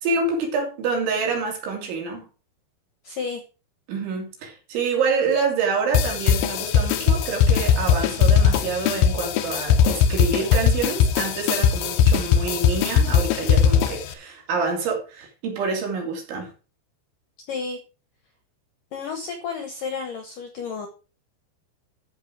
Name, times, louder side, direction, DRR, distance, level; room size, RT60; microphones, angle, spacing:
voice 1, 0.0-2.3 3.9-16.5, right 4 dB, 70° right, 5.3 m, -27 dB
voice 2, 3.0-3.4 17.5-17.8 18.9-20.9, left 5 dB, 70° left, 2.0 m, -31 dB
sound 1, 5.9-14.1, left 7 dB, 90° left, 2.2 m, -20 dB
13.0 x 6.6 x 4.8 m
omnidirectional pair, 5.6 m